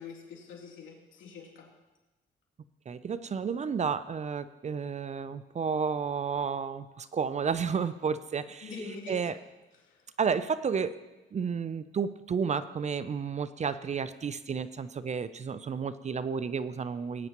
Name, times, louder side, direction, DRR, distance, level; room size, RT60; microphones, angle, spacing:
voice 1, 0.0-1.7 8.6-9.2 9.8-10.0, left 4 dB, 75° left, -2 dB, 2.9 m, -44 dB
voice 2, 2.9-8.7 9.1-9.4 10.2-11.0 11.3-17.3, right 6 dB, 35° right, 14 dB, 0.5 m, -31 dB
19.5 x 9.2 x 3.0 m, 1.1 s
cardioid pair, 90°, 20 cm